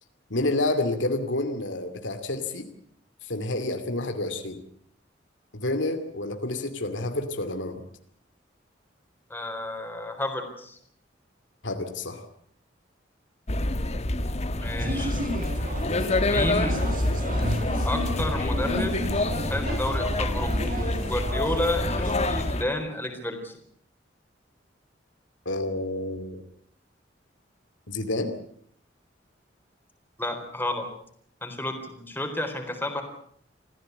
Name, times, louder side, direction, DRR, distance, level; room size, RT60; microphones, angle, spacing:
voice 1, 0.3-2.7 3.2-4.6 5.5-7.8 11.6-12.2 25.4-26.4 27.9-28.4, left 2 dB, 85° left, 7 dB, 2.6 m, -29 dB
voice 2, 9.3-10.8 14.6-15.1 16.2-16.8 17.8-19.0 19.5-20.7 21.0-23.6 30.2-30.9 31.4-33.0, left 1 dB, 10° left, 4 dB, 4.1 m, -31 dB
sound 1, 13.5-22.6, left 1 dB, 35° left, 1.5 m, -27 dB
sound 2, 14.8-22.4, equal, 50° right, 3.9 m, -33 dB
26.0 x 15.5 x 8.1 m, 0.66 s
head